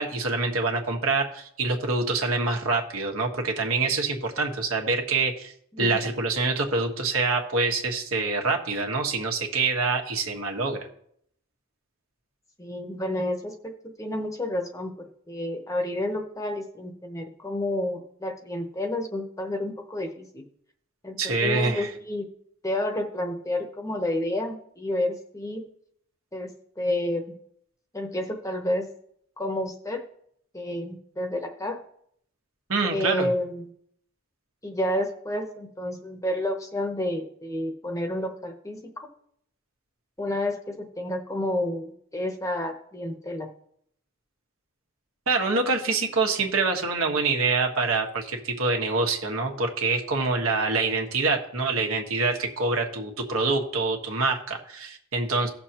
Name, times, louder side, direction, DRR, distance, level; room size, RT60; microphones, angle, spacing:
voice 1, 0.0-5.5 5.8-10.8 21.2-21.9 32.7-33.3 45.3-55.5, right 3 dB, 85° right, 2 dB, 1.5 m, -25 dB
voice 2, 12.6-20.4 21.0-22.3 22.6-25.7 26.3-26.5 26.8-27.3 27.9-28.9 29.4-30.0 30.5-31.8 32.9-33.7 34.6-39.1 40.2-43.5, left 1 dB, 15° left, 4 dB, 0.8 m, -30 dB
16.5 x 6.7 x 2.9 m, 0.69 s
head